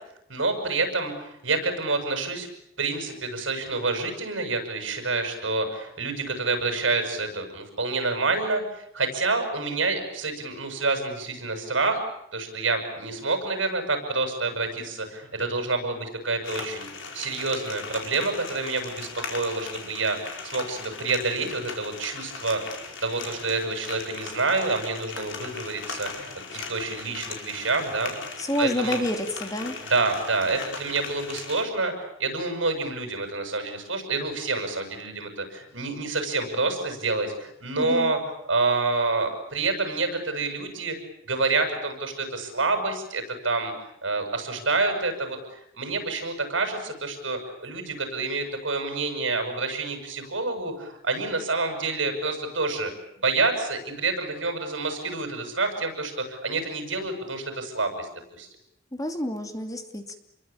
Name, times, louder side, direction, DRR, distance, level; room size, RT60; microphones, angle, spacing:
voice 1, 0.3-2.5 2.8-12.0 12.3-16.9 17.1-20.2 20.4-28.1 28.6-29.1 29.8-38.2 38.5-41.0 41.2-43.7 44.0-52.9 53.2-58.1 58.4-58.5, right 3 dB, 80° right, 6 dB, 7.4 m, -28 dB
sound 1, 16.4-31.6, left 4 dB, 70° left, 5.0 m, -38 dB
voice 2, 28.4-29.7 37.8-38.1 58.9-60.2, equal, 20° left, 6 dB, 2.7 m, -28 dB
28.5 x 23.0 x 8.8 m, 0.78 s
head